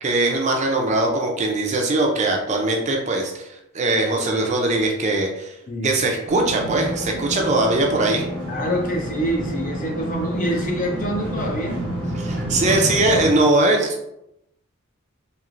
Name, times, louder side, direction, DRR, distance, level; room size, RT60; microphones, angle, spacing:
voice 1, 0.0-3.5 3.7-5.5 5.8-8.3 12.2-14.0, right 2 dB, 30° right, 1 dB, 0.4 m, -21 dB
voice 2, 5.7-6.0 8.4-11.8, equal, 35° left, 0 dB, 0.6 m, -26 dB
sound 1, 6.3-13.3, right 1 dB, 10° left, 0.8 m, -28 dB
3.1 x 2.8 x 2.5 m, 0.83 s
head